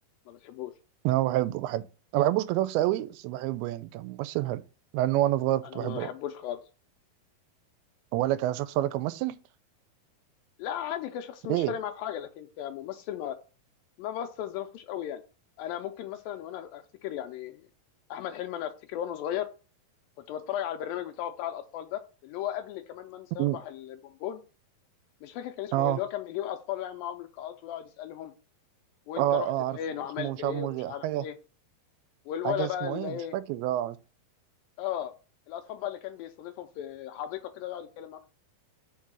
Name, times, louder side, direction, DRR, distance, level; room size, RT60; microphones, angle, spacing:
voice 1, 0.3-0.7 5.7-6.6 10.6-13.4 14.0-15.2 15.6-17.7 18.1-19.5 20.3-24.4 25.2-28.3 29.1-31.3 32.3-33.4 34.8-35.1 35.5-38.3, left 10 dB, 80° left, 2.1 m, -36 dB
voice 2, 1.0-1.9 2.1-4.6 4.9-6.1 8.1-9.4 11.5-11.7 23.4-23.6 25.7-26.0 29.2-29.8 30.2-31.3 32.4-34.0, right 14 dB, 85° right, 2.4 m, -28 dB
5.3 x 4.7 x 5.9 m
omnidirectional pair, 4.5 m